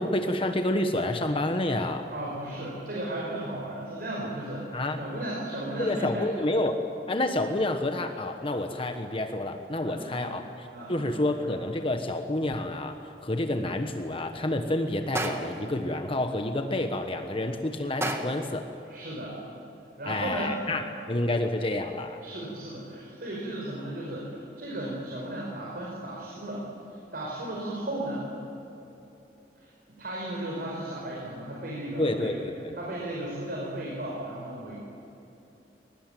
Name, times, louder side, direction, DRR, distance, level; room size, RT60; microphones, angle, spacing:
voice 1, 0.0-2.1 4.7-5.0 5.8-6.8 7.1-18.7 20.1-22.2 32.0-32.7, left 1 dB, 30° left, 6 dB, 1.3 m, -29 dB
voice 2, 2.1-6.3 9.8-10.4 10.7-11.4 18.9-19.4 20.0-20.6 22.2-26.6 27.1-28.3 29.6-32.3 32.8-34.7, right 1 dB, 60° right, -4 dB, 5.1 m, -35 dB
sound 1, 15.1-15.7 18.0-18.6, right 1 dB, 15° right, 1.7 m, -31 dB
21.5 x 20.0 x 9.2 m, 3.0 s
head